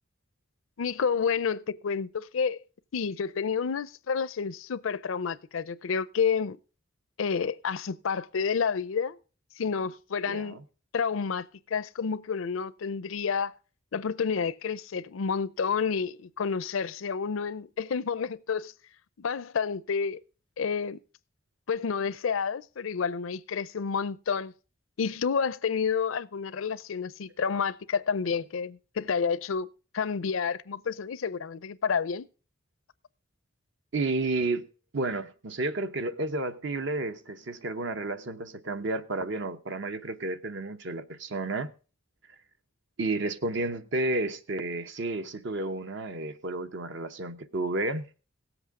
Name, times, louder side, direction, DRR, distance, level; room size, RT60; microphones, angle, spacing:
voice 1, 0.8-2.6 2.9-6.6 7.2-9.2 9.6-10.6 10.9-13.5 13.9-18.7 19.2-20.2 20.6-21.0 21.7-24.5 25.0-32.2, left 6 dB, 80° left, 0.5 m, -29 dB
voice 2, 10.3-10.6 33.9-41.7 43.0-48.1, right 2 dB, 60° right, 0.9 m, -31 dB
17.5 x 8.0 x 3.6 m
head